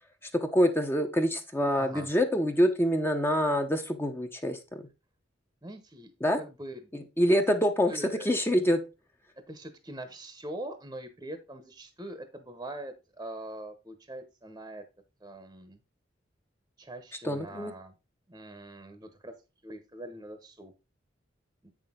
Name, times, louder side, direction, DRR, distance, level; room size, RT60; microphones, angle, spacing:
voice 1, 0.4-4.6 6.2-6.4 6.9-7.9 8.2-8.8 17.2-17.7, equal, 10° left, 5 dB, 0.8 m, -25 dB
voice 2, 1.8-2.1 5.6-6.8 7.9-8.3 9.5-14.8 15.2-15.8 16.8-17.9 18.3-19.3 19.6-20.7 21.6-21.7, right 1 dB, 20° right, 8 dB, 0.9 m, -43 dB
8.0 x 6.1 x 3.7 m, 0.27 s
head